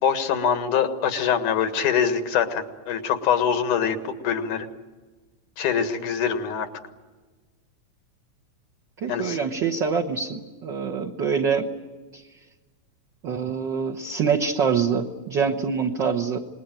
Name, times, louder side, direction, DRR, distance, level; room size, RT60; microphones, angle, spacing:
voice 1, 0.0-4.0 4.2-4.7 5.6-6.7 9.1-9.4, left 7 dB, 90° left, 8 dB, 3.1 m, -24 dB
voice 2, 9.0-11.7 12.1-12.2 13.2-16.4, right 6 dB, 50° right, 0 dB, 1.4 m, -25 dB
27.0 x 21.0 x 9.0 m, 1.3 s
omnidirectional pair, 3.4 m